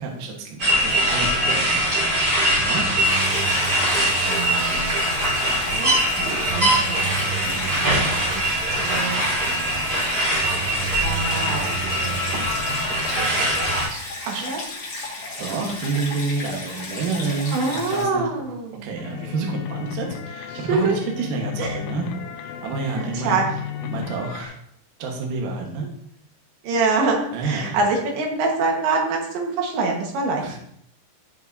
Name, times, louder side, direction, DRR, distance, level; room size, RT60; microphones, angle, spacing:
voice 1, 0.0-2.1 2.6-2.8 7.4-7.7 15.4-18.3 18.8-22.1 22.3-23.5 23.8-24.6 25.0-25.9 27.3-27.8 30.4-30.6, right 4 dB, 85° right, 1 dB, 1.8 m, -29 dB
sound 1, 0.6-13.9, right 1 dB, 20° right, 3.4 m, -22 dB
Stream, 3.0-18.0, left 2 dB, 45° left, 2.3 m, -34 dB
voice 2, 4.3-5.2 5.5-7.2 7.7-8.4 8.7-9.3 11.0-12.3 13.1-13.5 13.9-14.6 17.5-18.9 20.7-21.0 21.6-21.8 22.9-23.5 26.6-30.6, right 3 dB, 65° right, 1 dB, 3.3 m, -26 dB
sound 2, 19.0-24.5, left 9 dB, 85° left, 3.1 m, -33 dB
14.0 x 5.8 x 2.7 m, 0.69 s
omnidirectional pair, 6.0 m